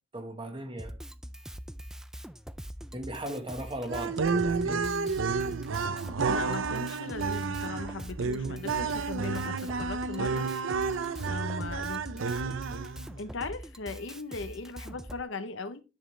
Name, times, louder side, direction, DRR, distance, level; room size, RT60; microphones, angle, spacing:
voice 1, 0.1-0.9 2.9-4.9, right 1 dB, 25° right, 1.3 m, -37 dB
Drum kit, 0.8-15.2, equal, 5° right, 0.3 m, -43 dB
sound 1, 3.9-13.1, right 4 dB, 75° right, 0.5 m, -31 dB
voice 2, 6.3-10.5 11.3-12.4 13.2-15.8, left 3 dB, 70° left, 0.8 m, -38 dB
9.6 x 6.3 x 3.3 m
head